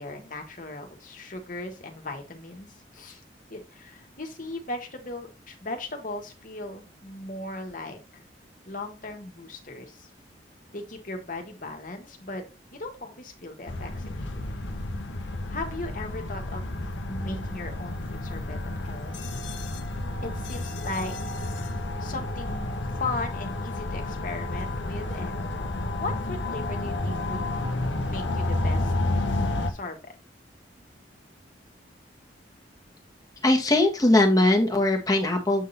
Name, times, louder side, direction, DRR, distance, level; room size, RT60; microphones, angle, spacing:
voice 1, 0.0-3.2 3.5-8.2 8.7-10.1 10.7-12.4 12.8-14.7 15.5-19.3 20.2-21.1 21.4-21.7 22.0-25.4 26.0-27.5 28.0-28.9 29.7-30.2, left 2 dB, 45° left, 4 dB, 1.6 m, -37 dB
sound 1, 13.7-29.7, left 2 dB, 90° left, 1.0 m, -31 dB
voice 2, 33.4-35.7, left 1 dB, 20° left, 3 dB, 1.4 m, -20 dB
8.3 x 3.8 x 4.0 m, 0.29 s
head